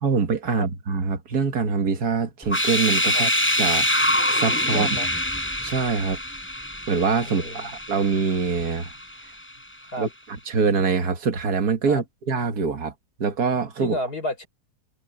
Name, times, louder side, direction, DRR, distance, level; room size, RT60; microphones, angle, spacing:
voice 1, 0.0-3.3 3.6-3.9 4.3-4.9 5.6-6.2 6.9-8.9 10.0-10.1 10.5-12.9 13.2-14.0, right 5 dB, 75° right, 2.1 m, -24 dB
sound 1, 2.4-9.3, left 1 dB, 5° left, 4.8 m, -25 dB
voice 2, 4.7-5.1 7.2-7.7 9.9-10.1 11.9-12.0 13.8-14.5, equal, 80° left, 6.4 m, -31 dB
omnidirectional pair, 1.7 m